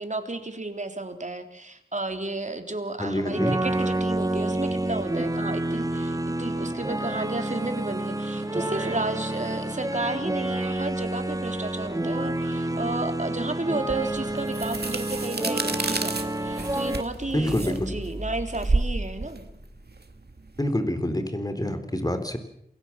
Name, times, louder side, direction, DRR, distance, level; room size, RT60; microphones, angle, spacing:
voice 1, 0.0-19.4, right 2 dB, 45° right, 7 dB, 3.5 m, -32 dB
voice 2, 3.0-3.5 17.3-17.9 20.6-22.4, left 1 dB, 20° left, 8 dB, 3.9 m, -27 dB
sound 1, 3.3-17.0, right 1 dB, 20° right, 1.9 m, -29 dB
sound 2, 13.9-20.7, right 3 dB, 65° right, 2.6 m, -30 dB
sound 3, 16.8-20.2, right 1 dB, 5° right, 3.7 m, -40 dB
28.0 x 21.0 x 7.4 m, 0.75 s
wide cardioid pair, 65°, 18 cm